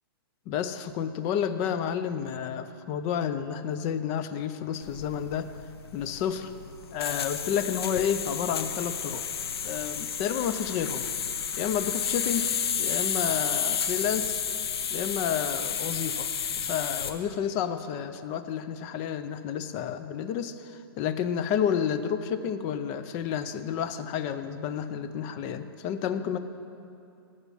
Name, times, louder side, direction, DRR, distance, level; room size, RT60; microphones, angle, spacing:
voice 1, 0.5-5.5 5.9-6.5 6.9-9.2 9.6-11.0 11.6-12.5 12.8-14.4 14.9-16.3 16.6-26.4, left 8 dB, 20° left, 11 dB, 0.4 m, -30 dB
sound 1, 4.8-17.2, left 7 dB, 85° left, 1.1 m, -31 dB
14.0 x 7.3 x 9.8 m, 2.7 s
hypercardioid pair, 175°, 13 cm